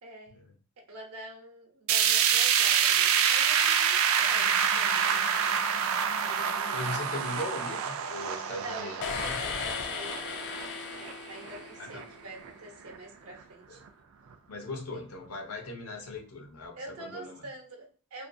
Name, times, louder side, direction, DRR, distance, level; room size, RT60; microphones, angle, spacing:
voice 1, 0.0-0.4 0.9-5.6 6.6-7.3 8.5-10.5 11.3-13.8 14.9-15.0 16.7-18.3, right 1 dB, 90° right, 1 dB, 0.8 m, -46 dB
sound 1, 1.9-12.0 12.4-12.5 12.9-13.0 13.9-14.0, right 8 dB, 65° right, 0.3 m, -27 dB
sound 2, 4.1-8.5, left 2 dB, 25° right, 0.7 m, -52 dB
voice 2, 6.7-9.4 11.8-12.0 13.7-13.8 14.5-17.4, left 2 dB, 85° left, 3 dB, 0.7 m, -39 dB
sound 3, 9.0-12.2, left 6 dB, 50° left, 0.3 m, -36 dB
2.5 x 2.5 x 2.2 m, 0.37 s
head